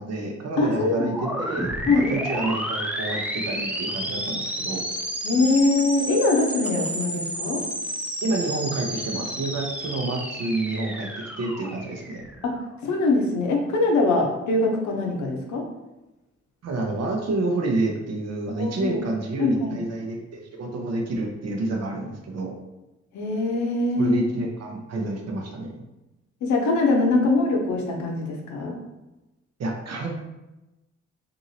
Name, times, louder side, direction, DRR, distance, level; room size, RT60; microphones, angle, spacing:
voice 1, 0.0-4.8 8.2-12.2 16.6-22.5 24.0-25.8 29.6-30.1, right 2 dB, 60° right, 1 dB, 0.7 m, -29 dB
voice 2, 0.6-1.1 1.9-2.1 5.2-7.6 12.4-12.5 12.8-15.6 18.6-19.0 19.4-19.8 23.1-24.2 26.4-28.7, left 2 dB, 75° left, 1 dB, 0.7 m, -22 dB
sound 1, 0.9-12.6, equal, 5° right, 0.5 m, -31 dB
2.8 x 2.6 x 2.7 m, 1.0 s
supercardioid pair, 45°, 29 cm